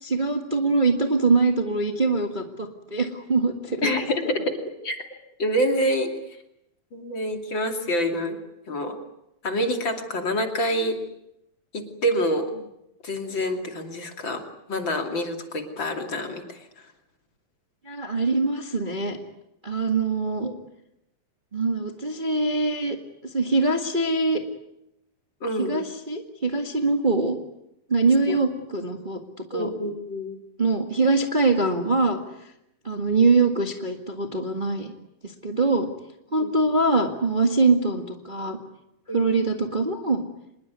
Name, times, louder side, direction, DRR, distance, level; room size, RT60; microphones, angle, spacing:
voice 1, 0.0-3.9 17.8-19.2 19.6-20.5 21.5-23.0 23.3-24.4 25.6-27.4 27.9-29.2 29.5-29.7 30.6-32.2 32.8-34.9 35.2-35.9 36.3-38.6 39.1-40.2, right 3 dB, 60° right, 4 dB, 0.5 m, -23 dB
voice 2, 3.8-4.4 4.8-5.1 5.4-6.1 6.9-8.4 8.7-9.0 9.4-11.0 11.7-12.5 13.0-14.4 14.7-16.6 20.4-20.5 25.4-25.8 28.3-28.4 29.5-30.4 36.4-36.5 39.1-39.3, equal, 35° left, 4 dB, 3.0 m, -27 dB
26.5 x 21.5 x 9.4 m, 0.84 s
omnidirectional pair, 4.3 m